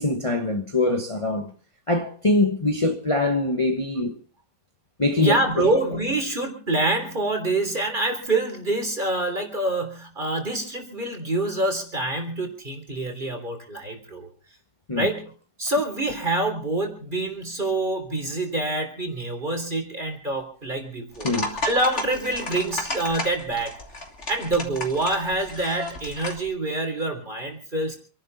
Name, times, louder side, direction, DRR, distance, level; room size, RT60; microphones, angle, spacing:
voice 1, 0.0-1.5 1.9-4.2 5.0-5.7 14.9-15.1 21.2-21.6, left 2 dB, 25° left, 1.3 m, -23 dB
voice 2, 5.2-14.3 15.0-15.3 15.6-21.3 21.6-23.8 24.3-28.0, right 2 dB, 35° right, 3.8 m, -26 dB
sound 1, 21.1-26.5, left 2 dB, 50° left, 3.1 m, -33 dB
27.5 x 11.5 x 4.1 m
omnidirectional pair, 1.5 m